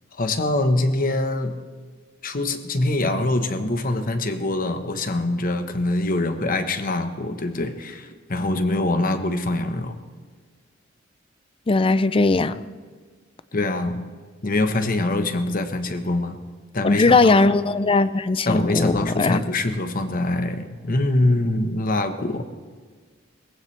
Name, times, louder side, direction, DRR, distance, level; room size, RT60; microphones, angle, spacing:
voice 1, 0.2-1.6 2.2-10.0 13.5-14.0 14.4-16.4 16.7-17.5 18.4-22.5, left 2 dB, 45° left, 8 dB, 1.1 m, -24 dB
voice 2, 11.7-12.6 16.8-19.4, left 3 dB, 25° left, 14 dB, 0.4 m, -19 dB
21.0 x 15.5 x 3.3 m, 1.5 s
head